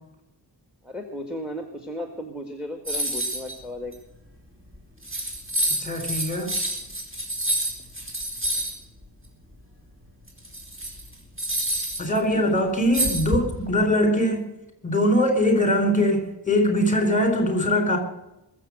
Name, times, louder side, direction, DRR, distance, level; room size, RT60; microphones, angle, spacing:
voice 1, 0.8-3.9 12.3-12.7, left 1 dB, ahead, 5 dB, 1.8 m, -35 dB
sound 1, 2.9-3.6 3.9-4.0 4.7-4.8 5.0-8.7 10.3-12.2 12.9-13.7, right 1 dB, 30° right, 4.4 m, -28 dB
voice 2, 5.8-6.5 12.0-14.4 14.8-18.0, left 1 dB, 20° left, 5 dB, 4.2 m, -22 dB
22.0 x 7.6 x 6.3 m, 0.90 s
wide cardioid pair, 115°, 42 cm